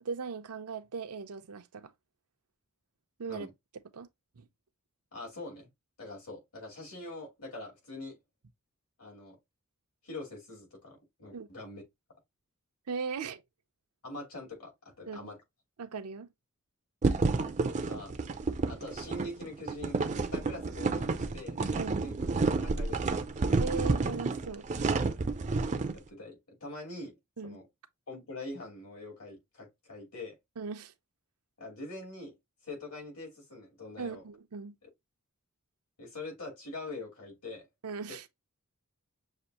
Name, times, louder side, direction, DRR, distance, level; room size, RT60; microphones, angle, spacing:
voice 1, 0.0-1.9 3.2-3.5 3.9-4.1 4.4-4.5 11.3-11.5 12.9-13.4 15.1-15.3 15.8-16.3 21.8-22.1 23.6-24.7 27.4-27.6 30.6-30.9 34.0-34.8 37.8-38.3, right 5 dB, 80° right, 0.6 m, -38 dB
voice 2, 5.1-5.7 6.0-8.2 9.0-9.4 10.0-11.8 14.0-15.4 17.7-18.2 18.7-20.0 20.3-22.1 22.5-23.2 23.5-23.6 25.9-27.1 27.4-27.6 28.1-30.4 31.6-32.3 32.6-34.2 36.0-37.7, left 2 dB, 75° left, 3.0 m, -44 dB
sound 1, 17.0-25.9, right 3 dB, 35° right, 0.5 m, -30 dB
6.5 x 2.5 x 2.8 m
head